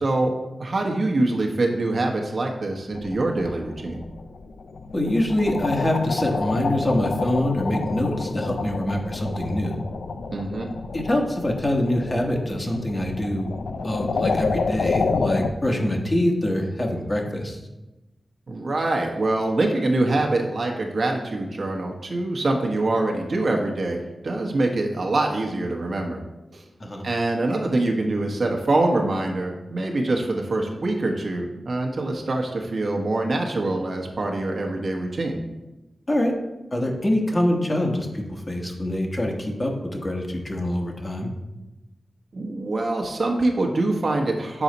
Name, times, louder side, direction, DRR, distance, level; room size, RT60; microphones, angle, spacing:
voice 1, 0.0-4.0 10.3-10.7 18.5-26.2 26.5-26.6 27.0-35.4 42.3-44.6, right 2 dB, 60° right, 1 dB, 1.0 m, -24 dB
sound 1, 2.9-15.5, left 4 dB, 85° left, 0.4 m, -29 dB
voice 2, 4.9-9.8 10.9-13.5 13.8-17.6 26.8-27.0 36.1-36.3 36.7-41.3, left 1 dB, 30° left, 1 dB, 1.2 m, -25 dB
7.1 x 4.1 x 4.0 m, 1.0 s
wide cardioid pair, 70°, 0 cm